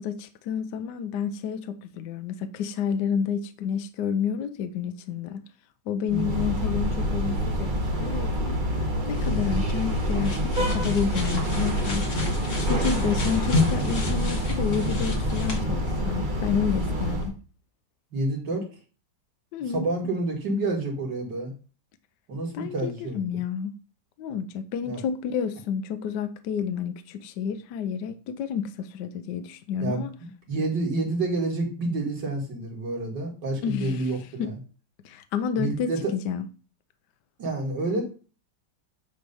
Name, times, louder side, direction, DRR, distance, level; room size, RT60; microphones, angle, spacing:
voice 1, 0.0-5.4 5.9-12.1 12.6-17.3 19.5-19.9 22.5-23.7 24.2-30.1 33.6-34.5 35.0-36.5, left 7 dB, 70° left, 1.2 m, -30 dB
sound 1, 6.1-17.3, equal, 30° right, 1.1 m, -27 dB
voice 2, 6.1-6.5 18.1-18.7 19.7-21.5 22.3-23.4 24.8-25.0 29.8-30.0 30.5-34.6 35.6-36.1 37.4-38.1, right 2 dB, 65° right, 2.7 m, -29 dB
sound 2, 9.2-15.6, left 3 dB, 45° left, 1.8 m, -31 dB
9.4 x 3.4 x 5.3 m
omnidirectional pair, 2.1 m